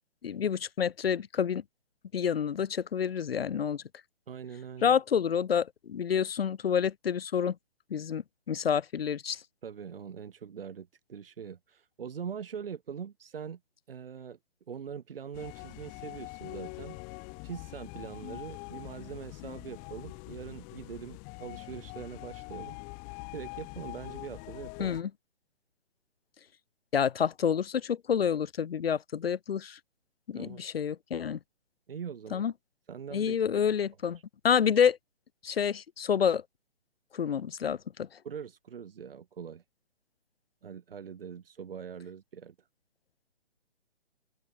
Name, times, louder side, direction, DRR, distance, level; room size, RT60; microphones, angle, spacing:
voice 1, 0.2-1.6 2.1-3.8 4.8-7.5 7.9-9.4 24.8-25.1 26.9-29.8 30.3-31.4 32.3-32.5 33.1-34.2 34.4-35.0 35.4-36.4 37.1-38.1, left 7 dB, 60° left, 0.8 m, -28 dB
voice 2, 4.3-4.9 9.6-13.6 13.9-14.4 14.7-17.0 17.4-22.8 23.3-25.0 30.3-30.6 31.9-32.4 32.9-33.6 38.2-39.6 40.6-42.7, right 7 dB, 55° right, 4.9 m, -42 dB
sound 1, 15.3-25.0, left 36 dB, 25° left, 7.5 m, -44 dB
open air
figure-of-eight pair, 140°, 34 cm